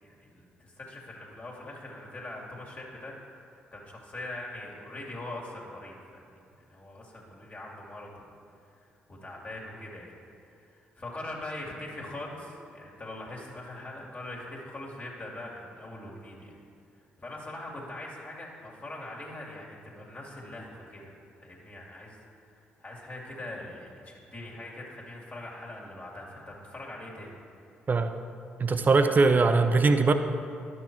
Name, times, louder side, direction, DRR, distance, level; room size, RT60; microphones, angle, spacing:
voice 1, 0.0-3.1 3.7-6.4 6.7-8.3 8.6-8.8 9.1-10.1 10.5-16.5 16.9-21.1 21.4-27.4, left 1 dB, 35° left, -3 dB, 2.2 m, -42 dB
voice 2, 28.6-30.1, right 3 dB, 40° right, 8 dB, 0.7 m, -21 dB
11.0 x 6.2 x 4.5 m, 2.5 s
hypercardioid pair, 45°, 5 cm